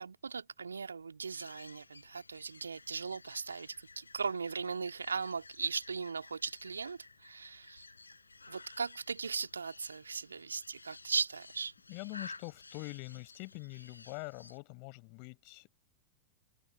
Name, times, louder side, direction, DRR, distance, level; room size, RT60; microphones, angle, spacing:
voice 1, 0.0-7.8 8.5-11.7, right 5 dB, 75° right, 2.1 m, -38 dB
sound 1, 1.3-14.6, left 3 dB, 80° left, 6.8 m, -54 dB
voice 2, 11.9-15.7, left 40 dB or more, 45° left, 5.2 m, -44 dB
open air
figure-of-eight pair, 90°, 0 cm